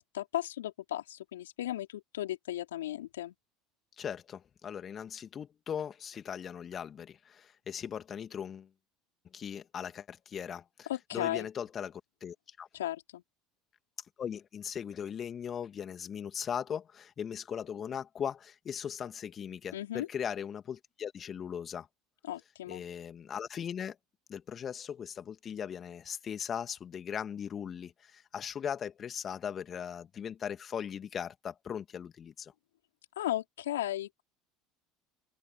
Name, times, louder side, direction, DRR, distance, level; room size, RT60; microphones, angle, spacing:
voice 1, 0.0-3.3 10.9-11.5 12.7-13.2 19.7-20.1 22.3-22.8 33.2-34.2, left 13 dB, 75° left, 3.9 m, -35 dB
voice 2, 4.0-8.7 9.3-12.7 14.2-21.9 22.7-24.0 24.3-32.5, left 8 dB, 35° left, 2.5 m, -39 dB
open air
figure-of-eight pair, 70°, 0 cm